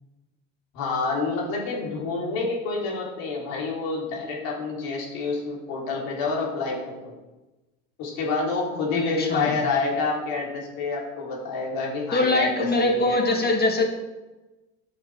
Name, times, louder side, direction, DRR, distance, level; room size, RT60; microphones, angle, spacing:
voice 1, 0.7-7.1 8.0-13.2, left 4 dB, 70° left, -3 dB, 3.4 m, -28 dB
voice 2, 8.9-9.5 12.1-13.8, left 2 dB, 25° left, 2 dB, 2.2 m, -23 dB
8.7 x 6.4 x 4.9 m, 1.1 s
hypercardioid pair, 80°, 37 cm